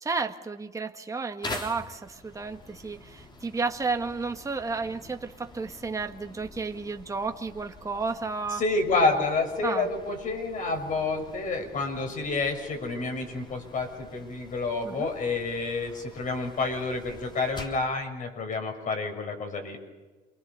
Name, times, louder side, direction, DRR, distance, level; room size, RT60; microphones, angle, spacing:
voice 1, 0.0-8.6 9.6-9.9 14.8-15.1, right 4 dB, 20° right, 5 dB, 1.8 m, -32 dB
sound 1, 1.4-17.9, left 2 dB, 25° left, 3.5 m, -46 dB
voice 2, 8.5-19.9, left 3 dB, 50° left, 5 dB, 6.5 m, -29 dB
29.0 x 23.5 x 6.9 m, 1.2 s
cardioid pair, 110°, 17 cm